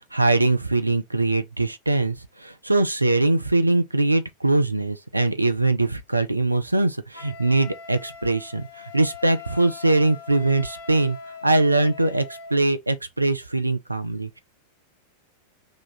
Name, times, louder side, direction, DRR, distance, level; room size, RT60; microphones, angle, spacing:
voice 1, 0.1-11.2 11.4-12.2 12.5-14.4, right 2 dB, 85° right, 0.5 m, -22 dB
Wind instrument woodwind instrument, 7.1-12.6, left 6 dB, 60° left, 1.1 m, -41 dB
3.1 x 2.4 x 4.0 m
figure-of-eight pair, 90°, 0 cm